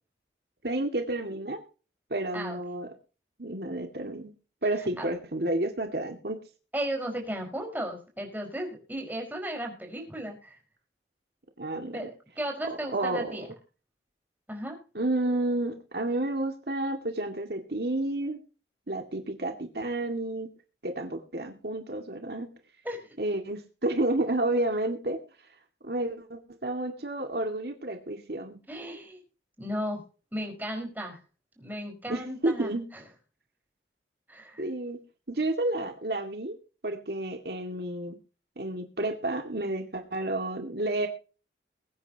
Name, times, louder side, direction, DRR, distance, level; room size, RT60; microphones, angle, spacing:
voice 1, 0.6-1.6 2.1-2.9 3.4-4.3 4.6-6.4 11.6-12.1 12.9-13.4 14.9-18.4 18.9-20.5 20.8-22.5 23.2-25.2 25.8-28.6 32.1-32.9 34.6-35.0 35.3-36.6 36.8-38.2 38.6-41.1, right 2 dB, 65° right, 5 dB, 2.1 m, -30 dB
voice 2, 6.7-10.6 11.9-13.4 14.5-14.8 22.8-23.1 28.7-29.2 29.6-30.0 30.3-31.2 31.6-33.0 34.3-34.6, equal, 10° right, 2 dB, 5.0 m, -35 dB
22.0 x 9.5 x 2.9 m, 0.35 s
head